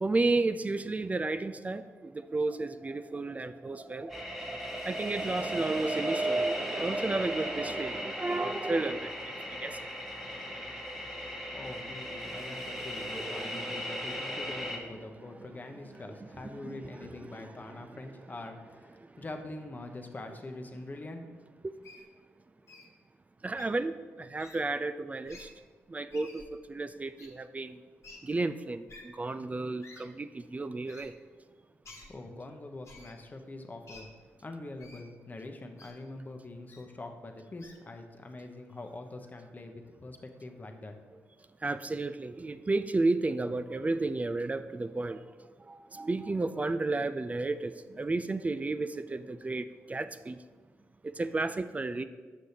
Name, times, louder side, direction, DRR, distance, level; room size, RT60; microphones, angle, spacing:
voice 1, 0.0-9.9 10.9-11.0 12.3-14.4 14.8-15.5 15.9-18.0 19.0-19.1 21.6-21.7 23.4-25.5 25.9-27.8 28.2-31.1 41.6-45.2 45.7-50.4 51.0-52.0, right 3 dB, 25° right, 11 dB, 0.3 m, -33 dB
sound 1, 4.1-14.8, left 1 dB, ahead, 1.3 m, -38 dB
voice 2, 11.5-21.2 32.1-34.1 34.4-40.9, left 2 dB, 30° left, 4 dB, 0.8 m, -44 dB
Wild animals, 21.8-22.0 22.7-22.9 23.5-23.7 24.4-24.6 25.2-25.5 26.1-26.5 27.2-27.3 28.0-28.2 28.9-29.0 29.8-30.0 30.9-31.1 31.8-32.1 32.8-33.1 33.9-34.0 34.8-35.0 35.8-35.9 36.7-36.8 37.6-37.8, left 3 dB, 55° left, 1.2 m, -51 dB
6.3 x 6.2 x 2.8 m, 1.4 s
supercardioid pair, 50°, 6 cm